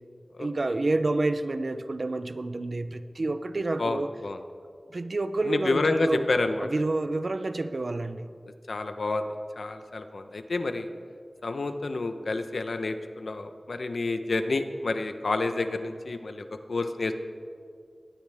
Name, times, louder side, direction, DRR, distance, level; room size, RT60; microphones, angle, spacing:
voice 1, 0.4-4.1 4.9-6.3 6.6-8.3, right 2 dB, 65° right, 11 dB, 0.8 m, -29 dB
voice 2, 3.8-4.4 5.4-6.7 8.7-10.9 11.4-17.1, left 3 dB, 90° left, 8 dB, 1.0 m, -29 dB
22.5 x 17.5 x 3.6 m, 2.3 s
wide cardioid pair, 55°, 0 cm